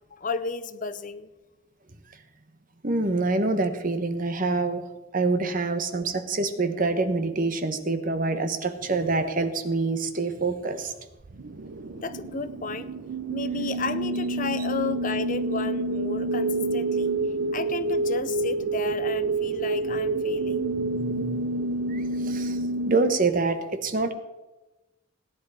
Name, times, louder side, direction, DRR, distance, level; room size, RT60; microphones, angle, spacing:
voice 1, 0.1-1.3 12.0-12.9 13.3-17.1 17.5-20.7, left 4 dB, 40° left, 13 dB, 0.7 m, -33 dB
voice 2, 2.8-4.8 5.1-10.9 20.7-21.4 21.9-22.6 22.9-24.1, right 3 dB, 45° right, 8 dB, 1.2 m, -26 dB
sound 1, 11.2-23.0, right 2 dB, 75° right, 0.8 m, -28 dB
17.5 x 10.5 x 4.9 m, 1.1 s
head